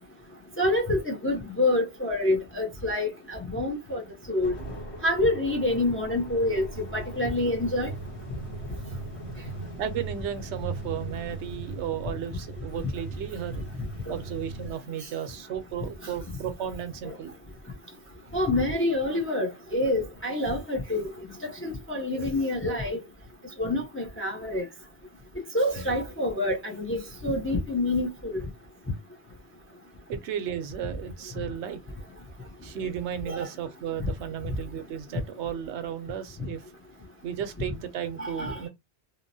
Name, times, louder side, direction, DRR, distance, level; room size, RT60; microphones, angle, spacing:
voice 1, 0.6-4.0 4.3-4.5 5.0-6.7 6.9-7.9 16.0-16.1 17.0-17.1 18.3-21.1 21.4-23.0 23.6-24.6 25.5-28.4 33.3-33.5 38.2-38.7, left 1 dB, 20° left, 0.4 m, -27 dB
sound 1, 4.4-14.7, right 2 dB, 70° left, 1.4 m, -39 dB
voice 2, 9.8-13.6 14.1-17.3 30.1-31.8 32.6-36.6 37.2-38.7, right 9 dB, 85° right, 0.9 m, -34 dB
2.9 x 2.0 x 2.6 m
omnidirectional pair, 1.1 m